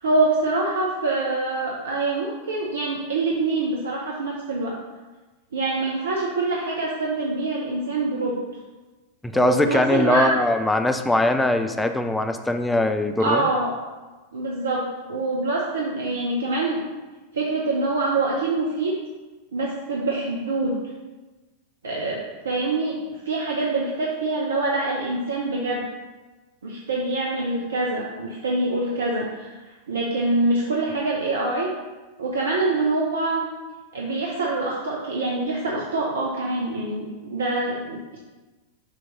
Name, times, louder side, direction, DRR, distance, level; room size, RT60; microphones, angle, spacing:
voice 1, 0.0-4.7 5.5-8.4 9.4-10.3 13.2-13.7 14.3-16.8 17.3-18.9 19.5-20.8 21.8-23.0 23.3-25.8 26.6-29.5 29.9-31.7 32.2-33.5 33.9-38.2, right 2 dB, 70° right, -3 dB, 0.8 m, -25 dB
voice 2, 9.2-13.5, left 1 dB, 5° left, 6 dB, 0.5 m, -21 dB
6.5 x 3.0 x 5.6 m, 1.2 s
figure-of-eight pair, 90°, 0 cm